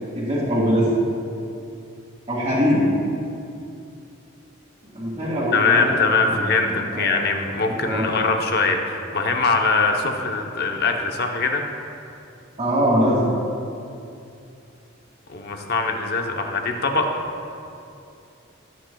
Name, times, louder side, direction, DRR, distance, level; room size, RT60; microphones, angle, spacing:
voice 1, 0.1-0.9 2.3-2.9 4.9-5.9 6.2-7.1 7.8-8.1 12.6-13.2, equal, 30° right, -10 dB, 2.2 m, -22 dB
voice 2, 5.5-11.6 15.3-17.1, left 4 dB, 50° left, 3 dB, 0.9 m, -22 dB
17.0 x 9.0 x 2.3 m, 2.6 s
head